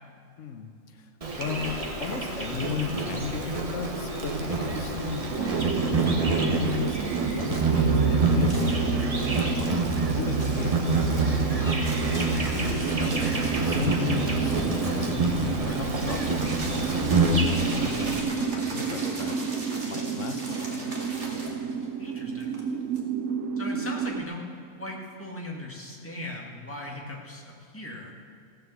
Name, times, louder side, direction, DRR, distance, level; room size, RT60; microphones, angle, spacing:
voice 1, 0.4-1.1 1.4-10.9 12.2-20.9, left 7 dB, 60° left, 7 dB, 1.3 m, -36 dB
Insect, 1.2-18.2, right 3 dB, 25° right, 1.1 m, -26 dB
sound 1, 5.3-24.2, right 6 dB, 70° right, 1.1 m, -32 dB
sound 2, 8.4-9.9 10.3-23.0, right 1 dB, 50° right, 2.2 m, -39 dB
voice 2, 22.0-22.6 23.6-24.4 24.8-28.1, left 1 dB, 10° left, -1 dB, 1.9 m, -38 dB
16.0 x 7.3 x 7.3 m, 2.5 s
omnidirectional pair, 1.5 m